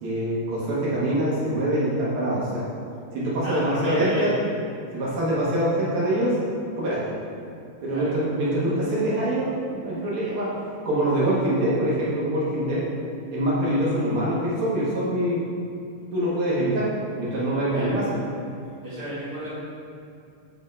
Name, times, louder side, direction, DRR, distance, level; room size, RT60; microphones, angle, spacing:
voice 1, 0.0-2.7 3.1-4.4 4.9-6.4 6.8-7.1 7.8-10.5 10.8-12.9 13.3-15.4 16.1-18.2, right 1 dB, 65° right, -8 dB, 1.4 m, -24 dB
voice 2, 3.4-4.3 7.9-8.1 17.7-18.0 18.8-19.5, equal, 40° right, -10 dB, 1.5 m, -33 dB
7.8 x 3.6 x 4.3 m, 2.4 s
omnidirectional pair, 3.8 m